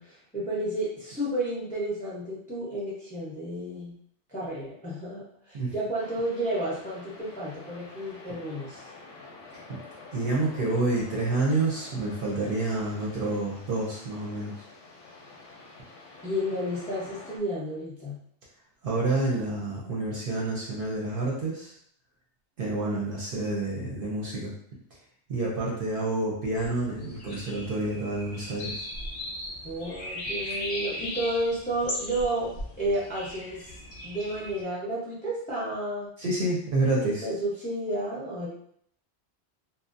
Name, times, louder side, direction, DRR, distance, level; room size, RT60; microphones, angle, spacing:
voice 1, 0.0-3.9 4.3-8.8 16.2-18.2 29.6-32.5 32.8-33.6 34.0-36.1 37.0-38.5, right 1 dB, 10° left, -7 dB, 0.5 m, -31 dB
sound 1, 6.0-17.4, left 3 dB, 85° left, 1.0 m, -48 dB
voice 2, 10.1-14.5 18.8-21.7 22.6-24.5 25.3-28.8 36.2-37.2, right 2 dB, 55° right, -4 dB, 0.7 m, -28 dB
sound 2, 26.6-34.6, left 1 dB, 60° left, 0.7 m, -38 dB
2.6 x 2.0 x 2.5 m, 0.65 s
omnidirectional pair, 1.2 m